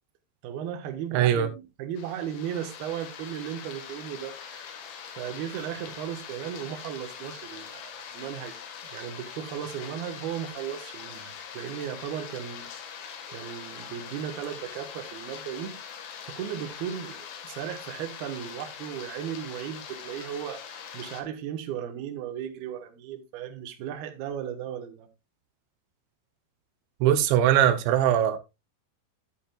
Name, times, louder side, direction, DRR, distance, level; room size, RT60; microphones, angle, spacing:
voice 1, 0.4-4.8 5.0-8.6 8.9-12.7 13.3-15.7 16.2-25.1, right 9 dB, 70° right, 2.9 m, -36 dB
voice 2, 1.1-1.5 27.0-28.4, right 11 dB, 85° right, 3.1 m, -21 dB
sound 1, 2.0-21.2, left 7 dB, 80° left, 3.8 m, -42 dB
12.0 x 8.5 x 2.3 m
omnidirectional pair, 5.1 m